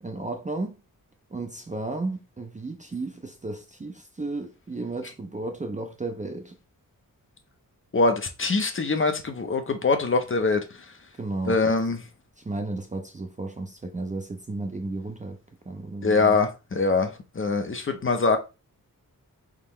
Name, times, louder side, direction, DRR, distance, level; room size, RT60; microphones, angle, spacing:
voice 1, 0.0-0.7 1.3-6.6 11.2-11.6 12.4-15.4 15.7-16.4, right 2 dB, 20° right, 0.4 m, -33 dB
voice 2, 7.9-10.6 11.5-12.0 16.0-18.4, left 3 dB, 35° left, 0.6 m, -23 dB
3.7 x 2.9 x 4.1 m
wide cardioid pair, 155°, 35 cm